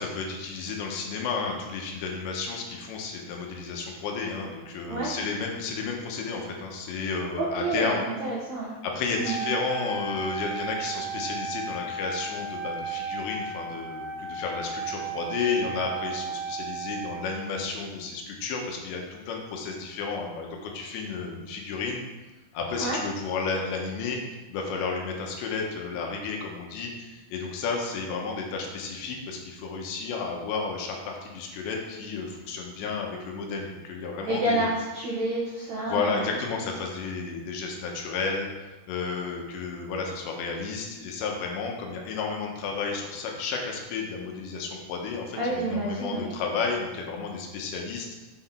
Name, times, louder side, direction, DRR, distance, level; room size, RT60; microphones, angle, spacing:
voice 1, 0.0-8.0 8.8-22.0 22.5-24.2 24.5-34.7 35.9-38.5 38.9-48.1, left 4 dB, 80° left, 1 dB, 3.1 m, -32 dB
voice 2, 7.4-8.7 9.2-9.4 22.8-23.0 34.3-36.3 45.4-46.3, right 2 dB, 75° right, -6 dB, 1.6 m, -29 dB
Wind instrument woodwind instrument, 9.2-17.5, right 4 dB, 5° left, 1.4 m, -34 dB
6.8 x 5.9 x 4.4 m, 1.1 s
omnidirectional pair, 5.2 m